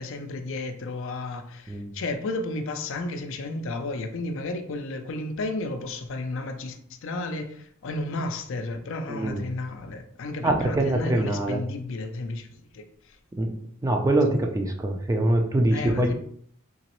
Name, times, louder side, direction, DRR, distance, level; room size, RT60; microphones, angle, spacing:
voice 1, 0.0-13.2 14.0-14.2 15.7-16.1, left 2 dB, 60° left, 0.4 m, -33 dB
voice 2, 9.1-9.4 10.4-11.6 13.4-13.5 13.8-16.1, right 1 dB, 15° right, 0.4 m, -24 dB
3.9 x 3.0 x 3.0 m
head